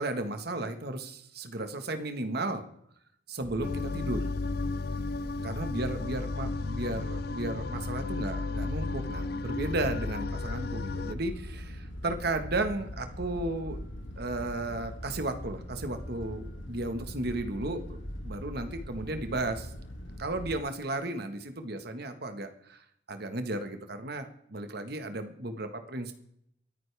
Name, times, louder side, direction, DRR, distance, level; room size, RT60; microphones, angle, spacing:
voice 1, 0.0-2.6 3.3-4.2 5.4-13.8 14.2-18.0 18.2-19.7 20.2-26.1, right 2 dB, 55° right, 7 dB, 1.4 m, -34 dB
sound 1, 3.4-20.6, equal, 90° left, 2.1 m, -41 dB
sound 2, 3.6-11.1, left 3 dB, 55° left, 0.5 m, -34 dB
23.5 x 9.6 x 3.4 m, 0.71 s
head